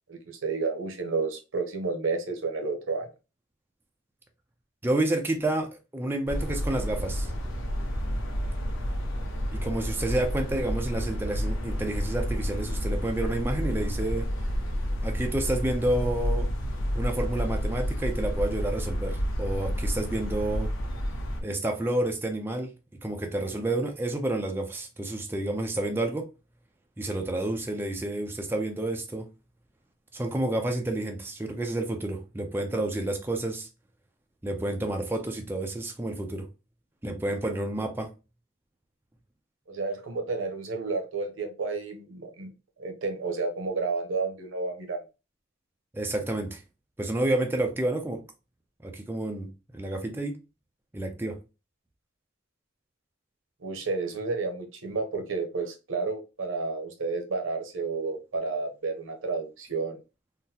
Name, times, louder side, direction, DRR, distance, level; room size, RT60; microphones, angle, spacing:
voice 1, 0.1-3.1 39.7-42.5 42.8-45.0 53.6-60.0, right 4 dB, 80° right, 0.8 m, -31 dB
voice 2, 4.8-7.3 9.5-14.3 15.0-16.5 16.9-20.7 21.4-22.7 23.0-26.3 27.0-29.3 30.1-33.7 34.4-36.5 37.0-38.1 45.9-46.6 47.0-48.2 48.8-50.4 50.9-51.4, right 1 dB, 10° right, 0.4 m, -29 dB
sound 1, 6.3-21.4, equal, 90° left, 0.9 m, -30 dB
3.8 x 2.0 x 2.7 m
head